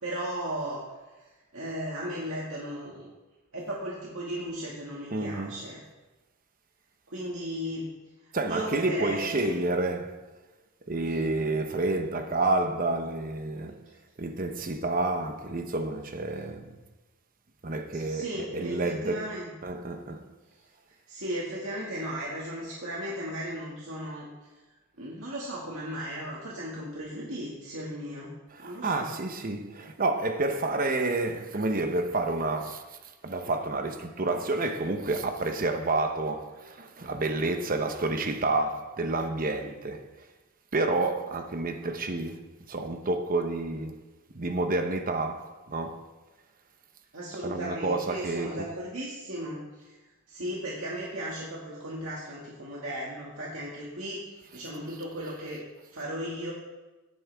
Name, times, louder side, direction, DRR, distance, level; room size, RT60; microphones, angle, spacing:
voice 1, 0.0-0.8 1.2-1.3 1.5-3.1 3.5-5.8 7.1-7.9 8.2-9.6 11.1-11.2 17.9-19.5 21.1-24.3 25.0-28.3 28.6-29.1 47.1-50.0 50.3-55.6 55.9-56.5, equal, 65° right, 2.1 m, -36 dB
voice 2, 5.1-5.6 8.3-10.3 10.9-13.9 14.2-16.8 17.6-19.3 19.6-20.2 28.5-33.0 33.2-40.1 40.7-42.4 42.7-44.0 44.3-46.0 47.4-48.5, right 2 dB, 40° right, 0.9 m, -29 dB
17.0 x 9.6 x 3.6 m
head